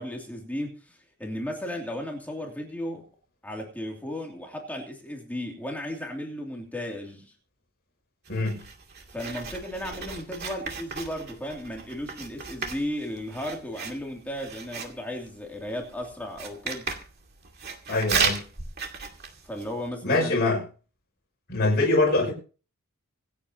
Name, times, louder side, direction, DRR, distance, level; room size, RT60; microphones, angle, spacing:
voice 1, 0.0-3.1 3.4-7.3 9.1-16.9 19.4-20.4, left 1 dB, 5° left, 0 dB, 2.8 m, -35 dB
Writing, 8.2-19.9, right 5 dB, 45° right, 2.3 m, -35 dB
voice 2, 17.9-18.4 20.0-20.6 21.5-22.3, left 2 dB, 45° left, -3 dB, 6.0 m, -23 dB
26.0 x 8.9 x 2.9 m, 0.37 s
head